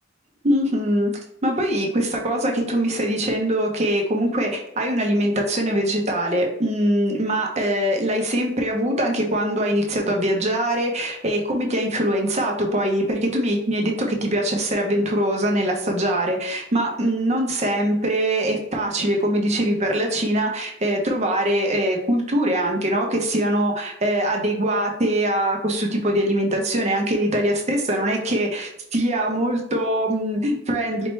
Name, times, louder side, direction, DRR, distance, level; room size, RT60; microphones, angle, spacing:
voice 1, 0.4-1.1 1.4-31.1, right 1 dB, 35° right, 1 dB, 0.6 m, -22 dB
4.3 x 2.2 x 3.1 m, 0.80 s
head